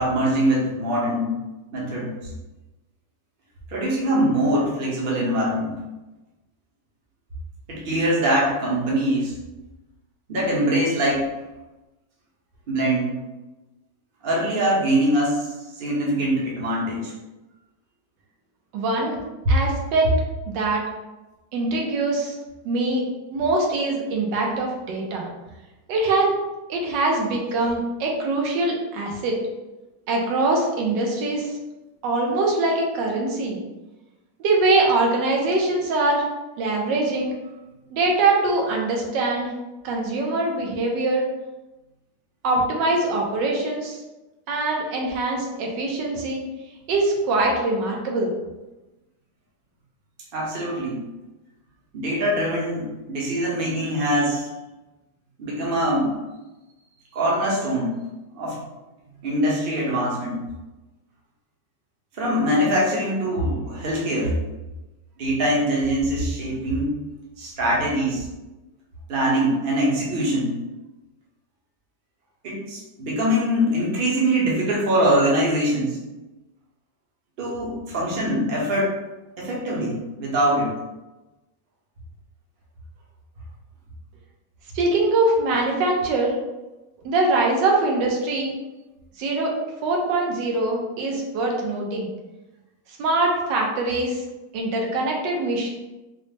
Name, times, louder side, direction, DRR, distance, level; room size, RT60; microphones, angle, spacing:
voice 1, 0.0-1.4 1.7-2.1 3.7-5.7 7.7-9.4 10.3-11.3 12.7-13.2 14.2-15.5 15.8-17.1 50.3-51.0 51.9-54.5 55.4-56.1 57.1-57.9 58.3-58.6 59.2-60.4 62.1-64.3 65.2-66.9 67.4-68.3 69.1-70.6 72.4-76.0 77.4-78.9 79.4-80.7, right 1 dB, 40° right, -5 dB, 0.9 m, -23 dB
voice 2, 18.7-19.2 19.5-20.1 20.5-20.8 21.5-22.4 22.6-23.0 23.3-25.3 25.9-26.3 26.7-29.4 30.1-31.5 32.0-33.6 34.4-36.2 36.6-37.3 37.9-39.5 39.8-41.3 42.4-44.0 44.5-46.4 46.9-48.3 84.7-86.3 87.0-88.5 89.2-89.5 89.8-92.1 93.0-94.2 94.5-95.7, right 2 dB, 85° right, 0 dB, 1.4 m, -23 dB
4.0 x 2.0 x 3.3 m, 1.1 s
omnidirectional pair, 1.9 m